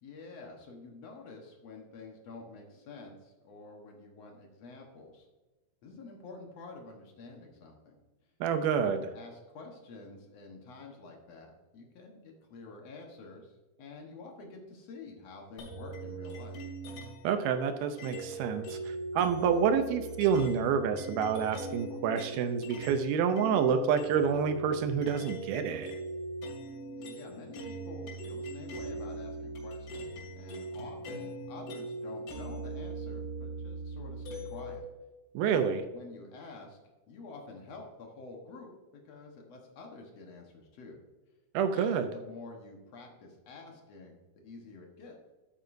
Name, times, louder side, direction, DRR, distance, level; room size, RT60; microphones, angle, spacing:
voice 1, 0.0-5.3 5.8-8.0 8.8-16.6 19.4-19.8 27.0-34.9 35.5-36.8 37.1-38.7 39.0-41.0 41.7-45.1, left 3 dB, 65° left, 1 dB, 1.6 m, -48 dB
voice 2, 8.4-9.0 17.2-25.9 35.4-35.8 41.5-42.1, right 7 dB, 80° right, 8 dB, 2.3 m, -28 dB
sound 1, 15.6-17.3 18.0-23.1 23.4-34.8, right 2 dB, 85° left, 4.5 m, -40 dB
12.0 x 8.8 x 2.6 m, 1.2 s
omnidirectional pair, 4.7 m